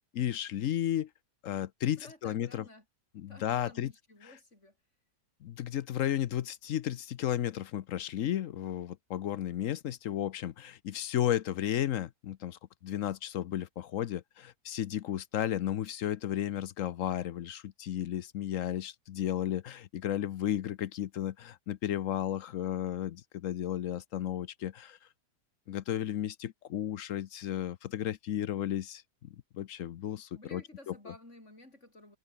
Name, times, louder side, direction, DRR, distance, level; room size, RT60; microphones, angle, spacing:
voice 1, 0.1-1.1 1.4-2.6 3.1-3.9 5.4-25.0 25.7-29.0 29.5-31.1, left 11 dB, 60° left, 0.9 m, -33 dB
voice 2, 1.8-2.8 3.3-4.7 30.3-32.2, left 1 dB, 40° left, 7.6 m, -53 dB
omnidirectional pair, 1.8 m